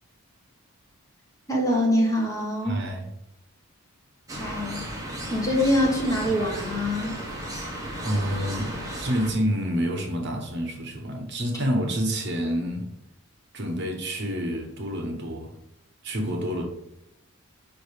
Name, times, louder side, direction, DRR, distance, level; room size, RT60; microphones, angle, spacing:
voice 1, 1.5-2.8 4.4-4.8 5.3-7.2, left 1 dB, 15° left, -1 dB, 1.2 m, -24 dB
voice 2, 2.6-3.1 8.0-12.9 13.5-15.5 16.0-16.6, equal, 50° right, 2 dB, 1.1 m, -28 dB
sound 1, 4.3-9.3, equal, 15° right, 1.0 m, -34 dB
5.1 x 4.9 x 4.9 m, 0.83 s
head